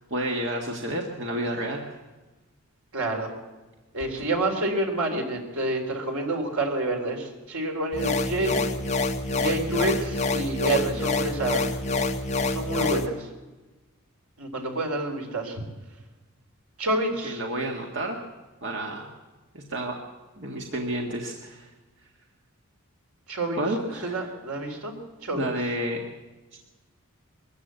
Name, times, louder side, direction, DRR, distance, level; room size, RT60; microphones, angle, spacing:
voice 1, 0.1-2.0 17.2-18.2 18.6-19.1 19.5-19.9 20.4-21.7 23.6-24.3 25.3-26.0, right 1 dB, 55° right, 1 dB, 1.9 m, -30 dB
voice 2, 2.9-3.3 3.9-8.6 9.3-11.8 12.5-13.3 14.4-15.6 16.8-17.4 23.3-23.6 24.0-25.0 25.2-25.5, right 2 dB, 85° right, 3 dB, 3.9 m, -28 dB
sound 1, 7.9-13.1, left 3 dB, 30° left, 1.3 m, -27 dB
22.0 x 14.5 x 8.2 m, 1.2 s
head